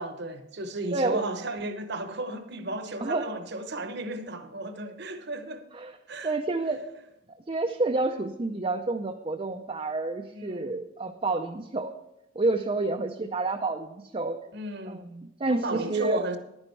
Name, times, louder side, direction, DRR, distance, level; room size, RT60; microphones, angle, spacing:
voice 1, 0.0-5.6 6.1-6.4 10.3-10.8 14.5-15.0 15.5-16.4, right 2 dB, 50° right, 1.0 m, -34 dB
voice 2, 0.9-1.2 3.0-3.2 5.7-5.9 6.2-6.8 7.5-11.9 12.4-14.4 14.9-16.2, right 3 dB, 25° right, 0.5 m, -29 dB
11.5 x 9.8 x 4.5 m
head